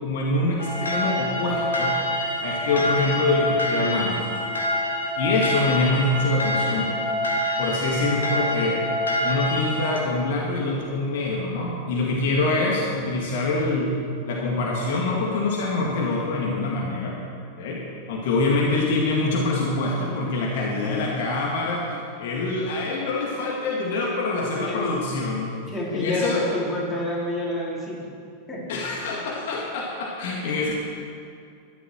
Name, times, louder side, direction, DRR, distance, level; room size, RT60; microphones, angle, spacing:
voice 1, 0.0-2.0 2.4-4.2 5.1-6.9 7.6-8.8 9.2-14.0 14.3-17.2 17.6-17.8 18.1-25.6 25.9-26.4 28.7-30.7, left 2 dB, 55° left, -2 dB, 2.1 m, -25 dB
sound 1, 0.6-10.0, left 1 dB, 75° left, 2.3 m, -26 dB
voice 2, 24.6-24.9 25.7-28.1 28.5-28.6 30.4-30.6, left 1 dB, 10° left, -6 dB, 4.5 m, -29 dB
13.0 x 12.0 x 6.4 m, 2.3 s
figure-of-eight pair, 90°, 0 cm